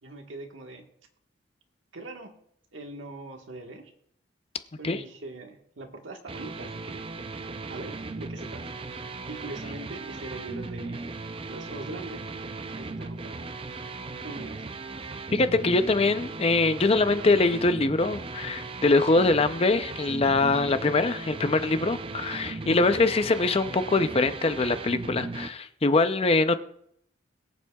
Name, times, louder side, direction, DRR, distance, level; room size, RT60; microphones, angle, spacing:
voice 1, 0.0-0.9 1.9-2.4 2.7-3.9 4.8-7.1 7.7-8.7 9.3-11.0 11.5-12.2 12.7-13.5 14.2-14.6, right 2 dB, 75° right, 3 dB, 1.5 m, -41 dB
sound 1, 6.3-25.5, right 3 dB, 30° right, 0.5 m, -37 dB
voice 2, 15.3-26.6, left 3 dB, 30° left, 10 dB, 0.5 m, -23 dB
22.0 x 7.4 x 2.3 m, 0.69 s
head